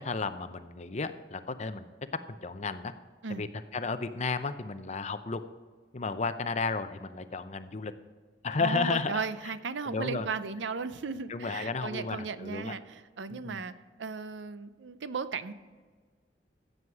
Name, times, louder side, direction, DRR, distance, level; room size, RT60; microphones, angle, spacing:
voice 1, 0.0-1.9 2.3-2.9 3.3-3.5 3.7-5.4 5.9-7.9 8.4-9.2 9.9-10.3 11.3-12.7 13.3-13.6, left 4 dB, 40° left, 10 dB, 0.6 m, -33 dB
voice 2, 8.6-13.7 14.0-15.5, right 4 dB, 90° right, 13 dB, 0.6 m, -36 dB
15.0 x 7.9 x 4.8 m, 1.5 s
head